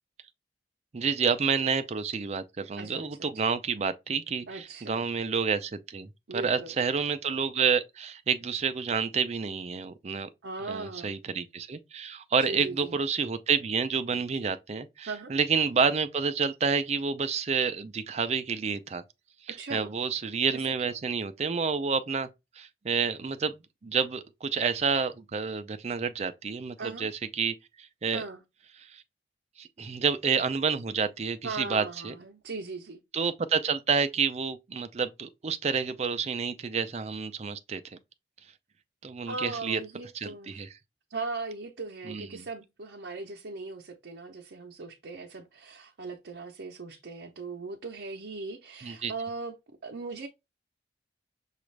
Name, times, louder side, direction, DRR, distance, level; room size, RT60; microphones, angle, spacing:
voice 1, 0.9-10.3 10.7-19.0 19.5-22.3 22.6-28.2 28.9-29.0 29.6-32.2 33.1-37.8 39.0-39.8 40.1-40.7 42.1-42.5 48.8-49.1, right 5 dB, 35° right, 0.4 m, -29 dB
voice 2, 2.8-3.3 4.5-5.0 6.3-6.7 10.4-11.2 12.4-13.0 15.0-15.3 19.6-19.9 20.8-20.9 26.8-27.1 28.1-28.4 31.4-33.0 39.3-40.6 41.1-49.6 49.8-50.3, right 3 dB, 80° right, 0.6 m, -38 dB
6.0 x 2.4 x 3.2 m
head